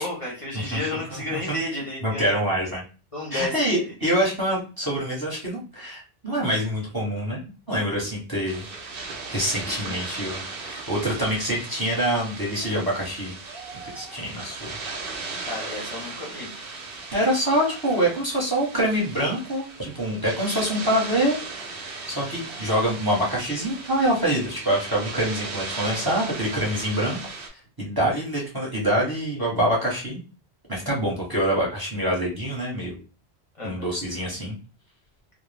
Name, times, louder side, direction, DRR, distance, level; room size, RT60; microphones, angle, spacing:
voice 1, 0.0-2.3 3.1-3.8 9.7-9.9 15.5-16.5 33.6-33.7 34.1-34.2, left 2 dB, 35° left, -4 dB, 0.7 m, -32 dB
voice 2, 0.5-1.5 2.0-2.8 3.3-8.6 9.3-13.3 13.8-14.8 17.1-21.4 21.7-27.2 27.5-30.2 30.7-33.0 33.6-34.6, right 1 dB, 25° right, -4 dB, 0.8 m, -25 dB
sound 1, 8.5-27.5, right 4 dB, 65° right, 0.8 m, -37 dB
2.3 x 2.0 x 3.2 m, 0.35 s
omnidirectional pair, 1.1 m